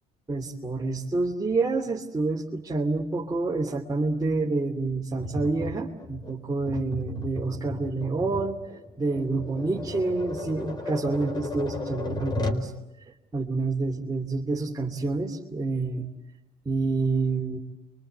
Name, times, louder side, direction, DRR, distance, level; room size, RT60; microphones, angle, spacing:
voice 1, 0.3-8.6 9.0-12.7 13.3-16.1 16.6-17.6, right 3 dB, 20° right, -1 dB, 3.1 m, -28 dB
Tap, 5.2-12.7, left 2 dB, 25° left, 4.3 m, -35 dB
29.0 x 24.5 x 8.2 m, 0.95 s
cardioid pair, 110°, 17 cm